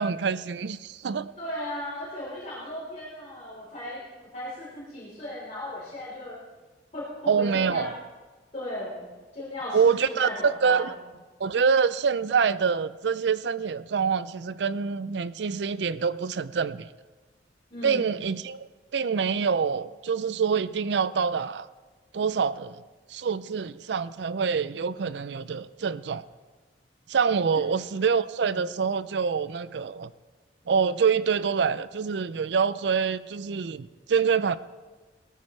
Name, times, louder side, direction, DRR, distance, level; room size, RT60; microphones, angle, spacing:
voice 1, 0.0-1.3 7.3-7.9 9.7-10.9 11.4-16.9 17.8-21.7 22.1-22.8 23.1-26.2 27.1-30.1 30.7-34.6, right 6 dB, 70° right, 0.4 m, -26 dB
voice 2, 1.4-6.4 6.9-7.9 8.5-10.9 17.7-18.1 27.5-27.6, left 1 dB, 40° left, 3.7 m, -37 dB
17.5 x 13.0 x 3.2 m
head